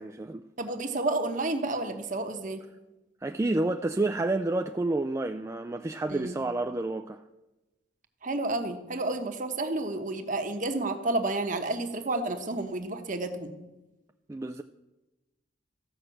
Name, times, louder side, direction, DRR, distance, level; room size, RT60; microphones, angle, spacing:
voice 1, 0.0-0.4 3.2-7.2 14.3-14.6, right 2 dB, 15° right, 0.3 m, -29 dB
voice 2, 0.6-2.6 6.1-6.4 8.2-13.5, right 2 dB, 40° right, 1.1 m, -30 dB
14.5 x 5.8 x 7.8 m
head